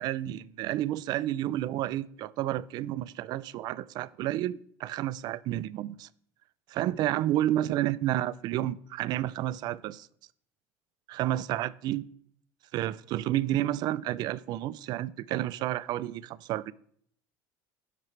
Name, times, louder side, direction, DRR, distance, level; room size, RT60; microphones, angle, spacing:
voice 1, 0.0-6.1 6.7-10.1 11.1-12.0 12.7-16.7, right 13 dB, 50° right, 0.4 m, -30 dB
16.5 x 5.9 x 3.2 m
cardioid pair, 135°, 9 cm